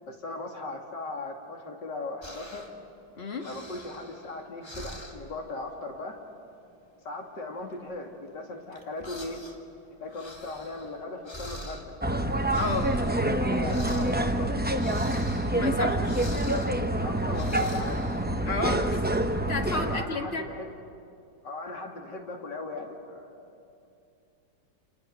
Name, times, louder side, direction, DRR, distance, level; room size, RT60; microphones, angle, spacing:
voice 1, 0.1-2.6 3.4-6.2 7.0-9.4 10.0-11.8 13.2-15.0 17.0-18.0 19.7-20.7 21.4-23.4, left 2 dB, 70° left, 2 dB, 3.1 m, -38 dB
sound 1, 2.2-2.9 3.2-5.4 5.8-6.1 6.3-6.7 7.2-9.6 9.9-18.3, left 1 dB, 15° left, 1.9 m, -45 dB
voice 2, 3.2-3.5 12.5-13.0 15.5-16.2 18.5-19.0 19.5-20.4, left 3 dB, 35° left, 4 dB, 1.9 m, -32 dB
sound 2, 12.0-20.0, right 1 dB, 15° right, 0.3 m, -27 dB
29.5 x 28.0 x 6.7 m, 2.6 s
omnidirectional pair, 2.0 m